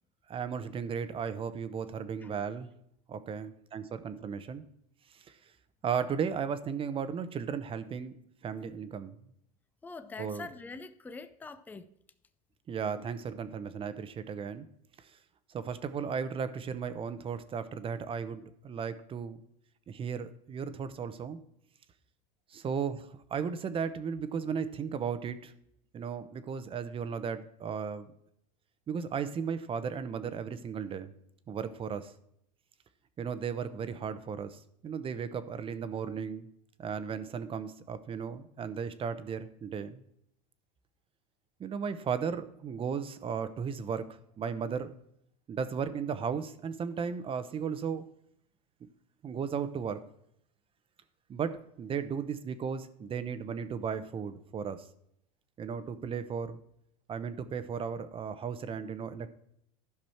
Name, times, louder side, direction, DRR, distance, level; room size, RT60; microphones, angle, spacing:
voice 1, 0.3-2.7 3.1-4.6 5.1-5.5 5.8-8.1 8.4-9.1 10.2-10.5 12.7-14.7 15.0-15.2 15.5-19.4 19.9-21.4 22.5-25.5 25.9-28.1 28.9-31.1 31.5-32.1 33.2-36.5 36.8-40.0 41.6-44.9 45.5-48.0 49.2-50.0 51.3-54.9 55.6-56.6 57.1-59.3, right 6 dB, 30° right, 12 dB, 0.8 m, -35 dB
voice 2, 9.8-11.9, left 4 dB, 10° left, 12 dB, 0.5 m, -44 dB
12.0 x 6.1 x 4.4 m, 0.74 s
supercardioid pair, 120°, 20 cm